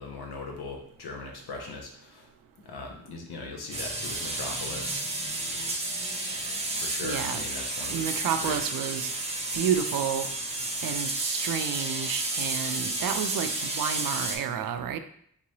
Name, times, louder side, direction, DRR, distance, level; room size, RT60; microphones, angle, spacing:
voice 1, 0.0-2.3 2.6-5.0 6.8-8.0 8.4-8.6, left 3 dB, 80° left, 1 dB, 0.9 m, -39 dB
sound 1, 3.7-14.4, right 2 dB, 15° right, 0.8 m, -31 dB
voice 2, 7.0-7.4 7.9-9.1 9.5-10.3 10.8-15.0, right 9 dB, 65° right, 9 dB, 0.5 m, -30 dB
3.6 x 3.0 x 2.7 m, 0.65 s
supercardioid pair, 45°, 38 cm